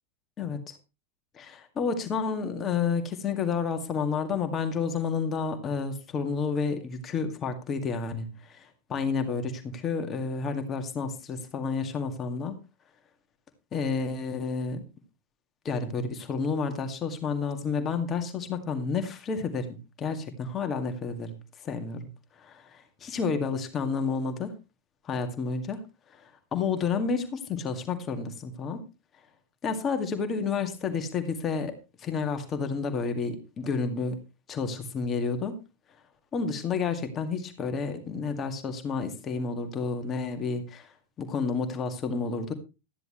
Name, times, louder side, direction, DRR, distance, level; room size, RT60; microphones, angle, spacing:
voice 1, 0.4-0.8 1.3-12.6 13.7-14.8 15.6-19.7 20.0-22.1 22.4-24.5 25.0-25.8 26.1-28.8 29.6-31.7 32.0-34.2 34.5-35.6 36.3-40.9 41.2-42.5, left 5 dB, 25° left, 6 dB, 2.1 m, -30 dB
13.0 x 10.5 x 3.2 m, 0.29 s
figure-of-eight pair, 90°, 0 cm